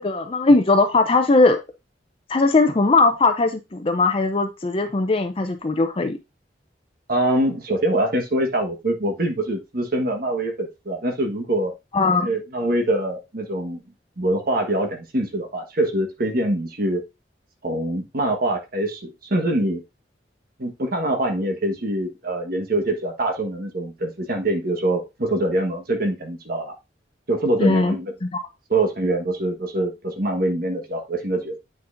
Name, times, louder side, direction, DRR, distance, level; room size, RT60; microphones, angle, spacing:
voice 1, 0.0-1.6 2.3-6.2 11.9-12.3 27.6-27.9 28.2-28.4, left 3 dB, 30° left, 7 dB, 0.5 m, -19 dB
voice 2, 7.1-11.7 12.2-13.8 14.2-17.0 17.6-19.8 20.6-26.7 27.3-28.1 28.7-31.6, right 1 dB, 55° right, 3 dB, 1.4 m, -24 dB
9.1 x 5.3 x 2.6 m, 0.24 s
head